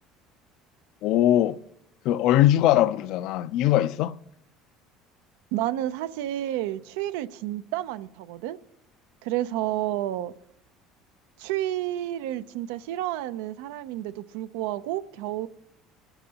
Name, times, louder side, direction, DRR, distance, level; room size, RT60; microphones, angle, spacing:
voice 1, 1.0-1.6 2.0-4.1, left 13 dB, 65° left, 0.4 m, -21 dB
voice 2, 5.5-8.6 9.2-10.3 11.4-15.5, right 13 dB, 90° right, 0.5 m, -30 dB
23.5 x 11.5 x 2.9 m
cardioid pair, 130°, 0 cm